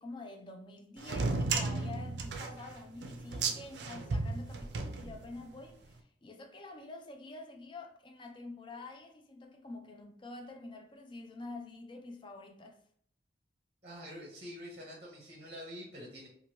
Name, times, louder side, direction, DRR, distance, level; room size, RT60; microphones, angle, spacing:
voice 1, 0.0-12.8, left 2 dB, 25° left, 0.3 m, -47 dB
sound 1, 1.0-5.6, right 3 dB, 65° right, 0.4 m, -34 dB
voice 2, 13.8-16.3, equal, 35° right, 0.8 m, -46 dB
2.8 x 2.5 x 2.9 m
head